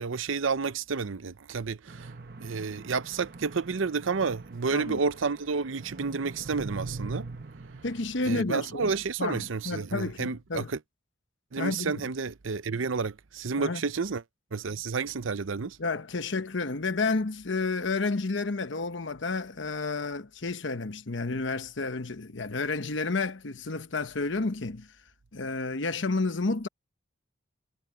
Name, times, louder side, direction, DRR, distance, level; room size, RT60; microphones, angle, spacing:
voice 1, 0.0-2.1 2.4-7.3 8.2-10.8 11.5-14.2 14.5-15.8, right 4 dB, 80° right, 0.7 m, -30 dB
sound 1, 1.9-8.4, right 3 dB, 50° right, 0.9 m, -42 dB
voice 2, 7.8-8.9 9.2-10.7 11.6-12.0 13.6-13.8 15.8-24.9 25.3-26.7, left 3 dB, 70° left, 1.0 m, -31 dB
head